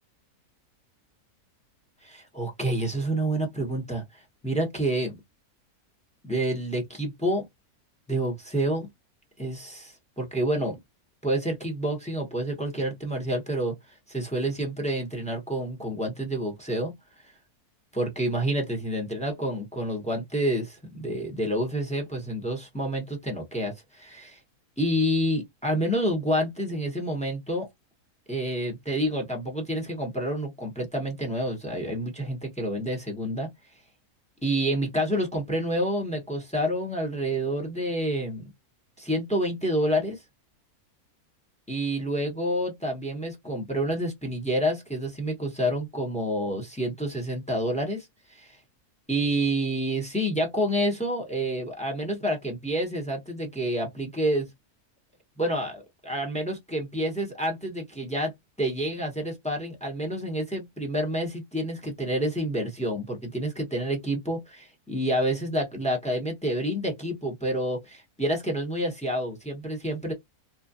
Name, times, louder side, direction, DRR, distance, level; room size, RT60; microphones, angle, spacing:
voice 1, 2.0-4.0 4.4-5.2 6.2-7.4 8.1-8.9 9.4-10.8 11.2-13.7 14.1-16.9 17.9-24.4 24.8-27.7 28.3-33.5 34.4-38.4 39.0-40.2 41.7-48.5 49.1-54.5 55.4-58.3 58.6-70.1, right 1 dB, 5° left, 0.6 m, -28 dB
3.1 x 2.2 x 2.5 m
omnidirectional pair, 1.6 m